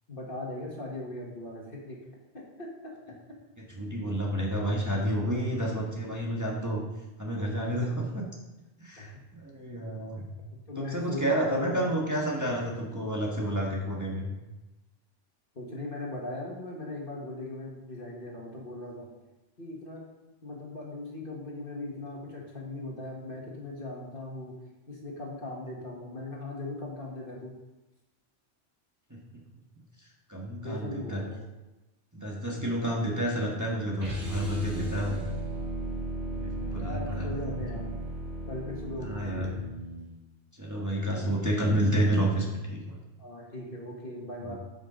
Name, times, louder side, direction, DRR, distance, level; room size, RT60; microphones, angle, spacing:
voice 1, 0.1-2.0 2.3-2.9 7.5-7.9 9.0-9.2 10.7-12.0 15.6-19.1 19.6-20.0 20.4-24.6 24.9-27.5 30.6-31.4 36.7-37.9 38.5-39.6 41.1-41.3 43.2-44.6, left 2 dB, 50° left, -2 dB, 1.9 m, -39 dB
voice 2, 3.7-6.8 7.2-8.2 8.8-10.2 10.8-14.3 29.1-29.2 30.0-31.2 32.1-35.2 36.3-37.3 39.0-39.5 40.6-43.0 44.5-44.6, right 1 dB, 15° right, -3 dB, 1.4 m, -30 dB
sound 1, 34.0-40.1, right 1 dB, 70° right, 2.7 m, -36 dB
12.5 x 5.5 x 3.9 m, 1.1 s
omnidirectional pair, 1.2 m